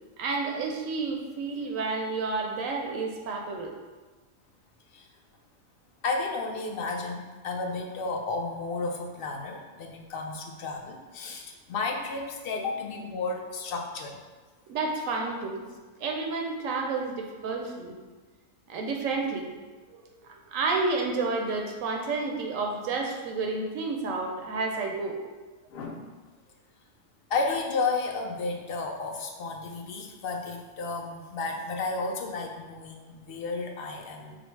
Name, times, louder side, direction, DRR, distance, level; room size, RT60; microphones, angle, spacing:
voice 1, 0.2-3.7 14.7-15.6 16.0-17.9 18.7-19.5 19.9-25.2, right 3 dB, 85° right, 2 dB, 1.0 m, -30 dB
voice 2, 6.0-14.2 25.7-26.1 27.3-34.4, left 3 dB, 60° left, 2 dB, 0.6 m, -32 dB
4.9 x 2.0 x 4.5 m, 1.3 s
omnidirectional pair, 1.3 m